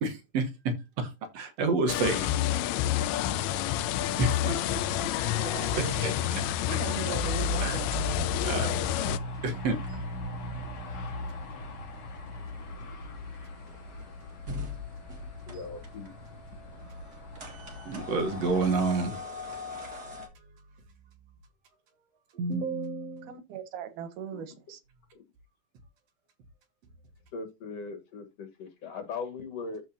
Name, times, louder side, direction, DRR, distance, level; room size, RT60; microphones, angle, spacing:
voice 1, 0.0-2.3 4.2-4.8 5.8-6.4 7.6-7.8 8.4-8.8 9.4-9.8 17.9-19.2 22.4-23.3, right 3 dB, 65° right, 2.1 m, -29 dB
sound 1, 1.9-9.2, left 11 dB, 80° left, 1.7 m, -29 dB
sound 2, 2.9-18.9, equal, 45° left, 1.7 m, -40 dB
voice 2, 5.4-6.0 6.7-8.4 23.2-24.8, right 8 dB, 90° right, 2.6 m, -39 dB
sound 3, 7.2-20.3, left 3 dB, 35° right, 2.2 m, -45 dB
voice 3, 15.5-16.1 24.3-24.4 25.1-25.2 27.3-29.8, left 4 dB, 60° left, 2.3 m, -39 dB
14.0 x 4.6 x 2.7 m
omnidirectional pair, 3.5 m